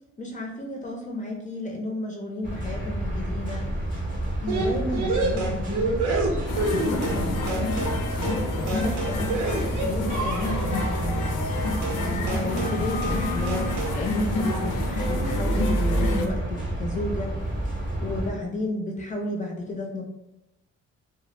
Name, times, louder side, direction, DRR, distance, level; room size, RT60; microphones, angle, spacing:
voice 1, 0.2-3.7 4.4-6.0 6.7-7.9 8.3-9.3 9.8-11.5 12.0-13.6 13.9-17.3 17.6-20.0, left 2 dB, 25° left, 0 dB, 0.4 m, -33 dB
sound 1, 2.4-18.3, right 1 dB, 25° right, 0.6 m, -29 dB
sound 2, 4.5-7.2 7.5-8.0 8.2-8.4 8.7-10.8 11.8-12.0 12.3-12.8 13.0-13.2 13.5-14.0, right 2 dB, 80° right, 0.6 m, -28 dB
sound 3, 6.5-16.3, left 2 dB, 85° left, 0.5 m, -29 dB
2.2 x 2.0 x 3.0 m, 0.91 s
cardioid pair, 90°, 30 cm